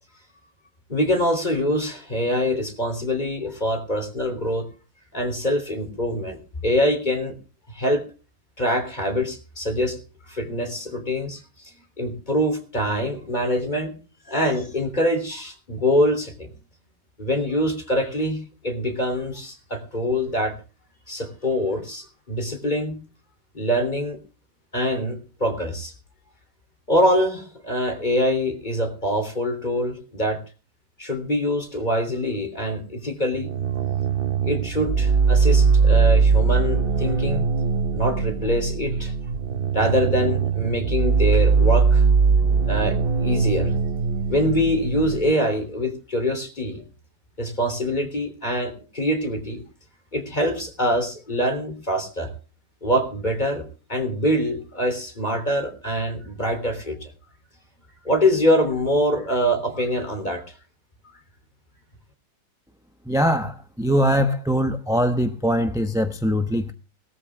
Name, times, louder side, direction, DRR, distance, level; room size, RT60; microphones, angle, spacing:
voice 1, 0.9-4.7 5.1-7.3 7.7-8.0 8.6-10.0 10.3-13.9 14.3-16.5 17.2-18.4 18.6-20.6 21.1-23.0 23.5-24.2 24.7-25.9 26.9-30.4 31.0-33.5 34.4-37.5 37.9-39.1 39.7-42.0 42.6-43.7 44.3-46.8 47.4-49.6 50.1-52.3 52.8-57.1 58.0-60.4, equal, 25° left, 3.6 m, -24 dB
sound 1, 33.3-45.3, right 5 dB, 50° right, 0.7 m, -21 dB
voice 2, 63.1-63.5 63.8-66.7, equal, 5° right, 0.7 m, -21 dB
19.0 x 13.5 x 3.6 m
omnidirectional pair, 1.9 m